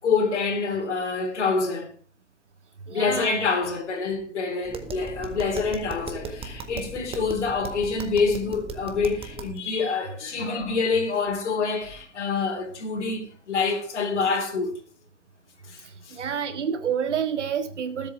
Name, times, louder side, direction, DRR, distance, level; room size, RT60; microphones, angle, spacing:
voice 1, 0.0-1.9 2.9-14.8 15.6-16.2, left 4 dB, 75° left, 4.0 m, -26 dB
voice 2, 2.9-3.4 16.1-18.1, right 7 dB, 75° right, 2.0 m, -28 dB
Tap, 4.6-9.6, right 4 dB, 15° right, 1.7 m, -37 dB
20.5 x 8.3 x 3.5 m
hypercardioid pair, 115°, 35 cm